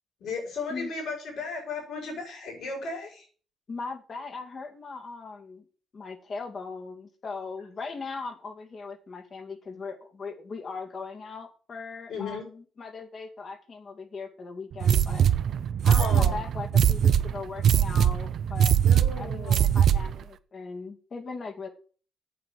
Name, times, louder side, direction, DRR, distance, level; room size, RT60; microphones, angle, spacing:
voice 1, 0.2-3.2 12.1-12.5 15.8-16.4 18.8-19.7, left 4 dB, 75° left, -1 dB, 5.9 m, -35 dB
voice 2, 3.7-5.6 5.9-15.3 15.8-18.8 19.2-21.7, left 4 dB, 45° left, 4 dB, 2.3 m, -39 dB
sound 1, 14.8-20.2, right 9 dB, 65° right, 0.7 m, -22 dB
8.7 x 7.4 x 7.3 m, 0.40 s
cardioid pair, 90°, 0 cm